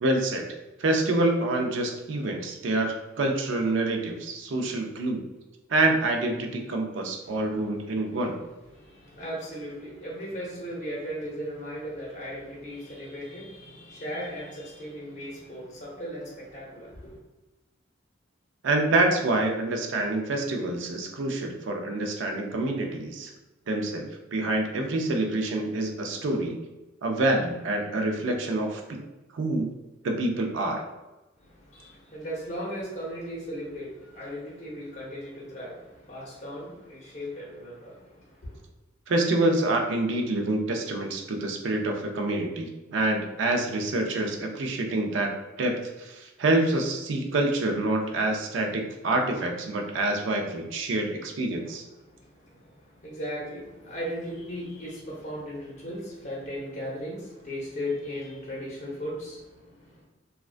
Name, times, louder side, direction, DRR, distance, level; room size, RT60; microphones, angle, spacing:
voice 1, 0.0-0.5 0.8-5.2 5.7-8.3 18.6-23.3 23.7-26.6 27.0-29.0 29.3-29.7 30.0-30.8 39.1-51.8, right 2 dB, 70° right, 3 dB, 0.4 m, -27 dB
voice 2, 7.2-7.7 8.1-8.2 8.7-17.2 31.4-38.6 52.0-60.0, equal, 40° left, -5 dB, 0.6 m, -37 dB
2.3 x 2.1 x 2.4 m, 1.1 s
head